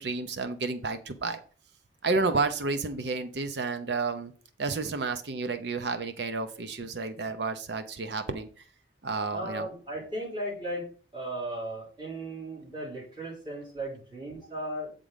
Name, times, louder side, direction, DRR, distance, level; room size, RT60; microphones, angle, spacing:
voice 1, 0.0-1.4 2.0-4.3 4.6-8.5 9.0-9.7, right 3 dB, 70° right, 9 dB, 0.7 m, -31 dB
voice 2, 9.3-14.9, right 1 dB, 25° right, -7 dB, 3.3 m, -36 dB
8.3 x 3.7 x 5.1 m, 0.41 s
head